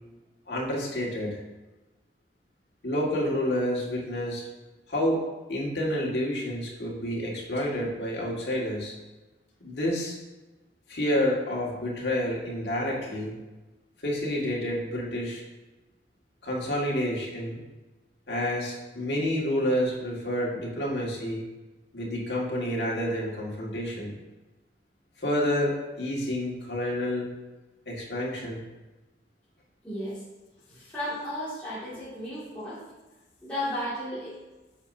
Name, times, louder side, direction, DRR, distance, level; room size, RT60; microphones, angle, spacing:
voice 1, 0.5-1.4 2.8-4.5 4.9-5.2 5.5-8.9 9.6-10.2 10.9-13.3 14.0-15.4 16.4-17.6 18.3-21.4 21.9-24.2 25.2-27.3 27.9-28.6, equal, 65° left, -3 dB, 1.9 m, -29 dB
voice 2, 29.8-30.2 30.7-32.8 33.4-34.3, left 1 dB, 10° left, -13 dB, 2.2 m, -34 dB
8.8 x 6.7 x 2.7 m, 1.1 s
head